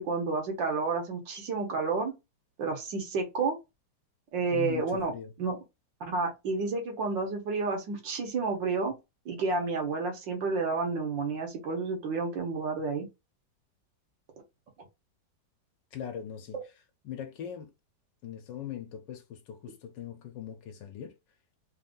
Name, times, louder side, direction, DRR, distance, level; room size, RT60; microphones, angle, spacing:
voice 1, 0.0-2.1 2.6-3.6 4.3-5.1 5.4-5.6 6.0-8.9 9.3-13.1 16.5-16.6, right 4 dB, 80° right, 2.0 m, -30 dB
voice 2, 4.5-5.3 15.9-16.6 17.0-17.7 18.2-21.1, left 9 dB, 80° left, 1.4 m, -40 dB
4.1 x 2.6 x 3.7 m
omnidirectional pair, 2.0 m